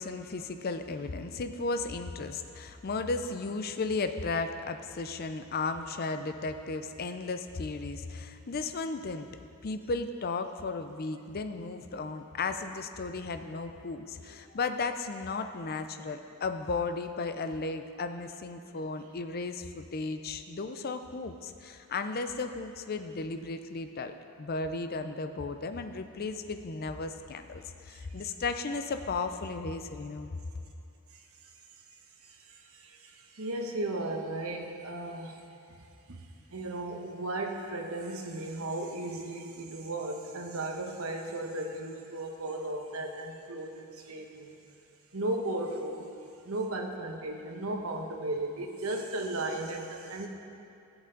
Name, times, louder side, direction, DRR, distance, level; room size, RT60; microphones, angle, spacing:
voice 1, 0.0-9.3 9.6-30.4, left 3 dB, 45° left, 8 dB, 0.5 m, -35 dB
voice 2, 32.3-35.4 35.7-35.8 36.1-44.6 45.1-46.1 46.4-50.3, right 2 dB, 70° right, 2 dB, 1.1 m, -35 dB
14.5 x 8.0 x 3.9 m, 2.6 s
head